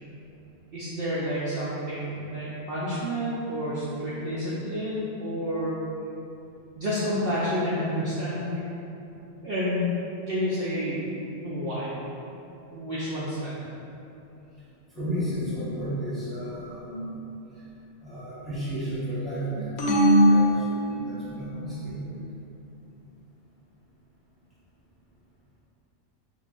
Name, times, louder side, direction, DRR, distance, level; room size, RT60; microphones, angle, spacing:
voice 1, 0.7-5.7 6.8-8.6 9.4-9.9 10.3-11.1 11.4-12.0 12.7-13.7 21.5-21.8, equal, 60° right, -9 dB, 0.7 m, -29 dB
voice 2, 14.9-17.2 18.0-22.2, equal, ahead, -13 dB, 1.1 m, -33 dB
sound 1, 19.8-21.5, equal, 65° left, 0.8 m, -21 dB
5.5 x 2.5 x 2.4 m, 2.9 s
omnidirectional pair, 1.3 m